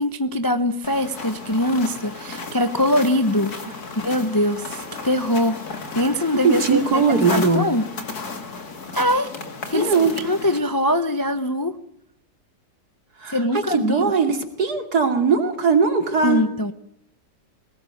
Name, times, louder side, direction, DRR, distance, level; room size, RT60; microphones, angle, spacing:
voice 1, 0.0-5.6 5.9-7.8 8.9-9.3 9.7-9.9 10.2-11.8 13.3-14.1 16.2-16.7, left 1 dB, 15° left, 10 dB, 0.7 m, -22 dB
sound 1, 0.8-10.6, left 4 dB, 60° left, 2.7 m, -34 dB
voice 2, 6.4-7.7 9.7-10.1 13.2-16.4, right 5 dB, 60° right, 6 dB, 3.1 m, -20 dB
22.0 x 18.5 x 9.3 m, 0.76 s
omnidirectional pair, 1.9 m